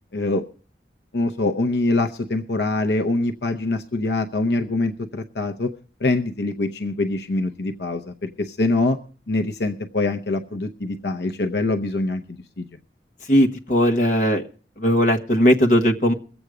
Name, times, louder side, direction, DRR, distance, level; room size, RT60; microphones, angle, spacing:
voice 1, 0.1-0.4 1.1-5.7 6.0-9.0 9.3-12.7, left 2 dB, 75° left, 5 dB, 0.8 m, -24 dB
voice 2, 13.3-14.4 14.8-16.1, equal, 45° left, 4 dB, 1.4 m, -18 dB
22.0 x 8.0 x 4.9 m, 0.40 s
head